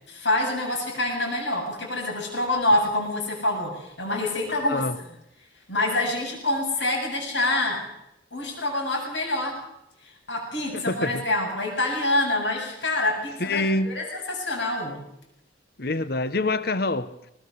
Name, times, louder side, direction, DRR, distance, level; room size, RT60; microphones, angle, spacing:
voice 1, 0.1-4.9 5.7-7.8 8.3-9.6 10.0-15.0, left 1 dB, 75° left, 1 dB, 7.6 m, -26 dB
voice 2, 10.7-11.2 13.4-14.0 15.8-17.3, left 2 dB, 55° left, 13 dB, 0.9 m, -26 dB
20.0 x 19.5 x 7.0 m, 0.82 s
head